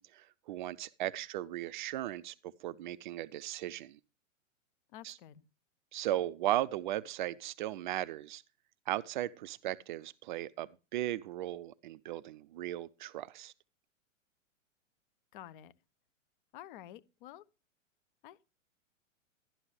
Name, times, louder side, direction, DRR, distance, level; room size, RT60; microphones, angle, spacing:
voice 1, 0.0-4.0 5.0-5.2 5.9-8.4 8.9-13.5, right 13 dB, 40° right, 0.5 m, -37 dB
voice 2, 4.9-5.4 15.3-15.7 16.5-17.4 18.2-18.5, left 12 dB, 40° left, 0.7 m, -50 dB
12.0 x 11.5 x 3.2 m
figure-of-eight pair, 110°, 39 cm